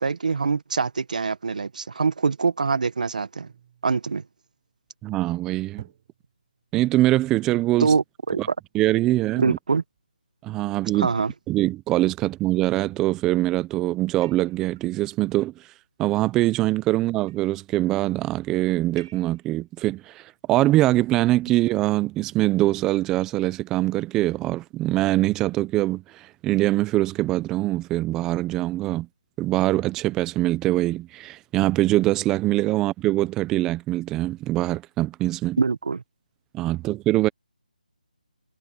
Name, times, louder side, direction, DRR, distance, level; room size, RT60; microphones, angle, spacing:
voice 1, 0.0-3.5 3.8-4.2 7.8-8.5 9.4-9.8 10.9-11.3 35.6-36.0, right 4 dB, 60° right, 1.4 m, -24 dB
sound 1, 3.4-4.9 5.8-6.7 8.3-8.8 9.3-9.4 9.9-10.1 10.7-11.1 12.2-12.7 13.3-13.6 14.2-14.9 16.0-16.6 17.1-17.6 19.0-19.5, right 9 dB, 30° right, 4.7 m, -51 dB
voice 2, 5.0-5.9 6.7-7.9 8.4-8.5 8.7-9.6 10.4-11.1 11.5-15.5 16.0-29.1 29.4-35.6 36.5-37.3, right 16 dB, 10° right, 0.5 m, -23 dB
figure-of-eight pair, 165°, 5 cm